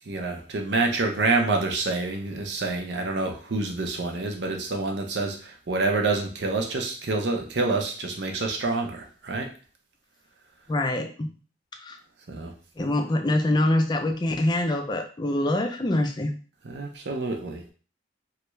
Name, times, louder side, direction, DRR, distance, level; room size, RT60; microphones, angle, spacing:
voice 1, 0.1-9.5 12.3-12.5 16.6-17.6, right 3 dB, 70° right, 2 dB, 0.7 m, -27 dB
voice 2, 10.7-11.4 11.8-12.0 12.8-16.3, left 1 dB, 25° left, 5 dB, 0.4 m, -25 dB
3.2 x 2.4 x 3.1 m, 0.39 s
head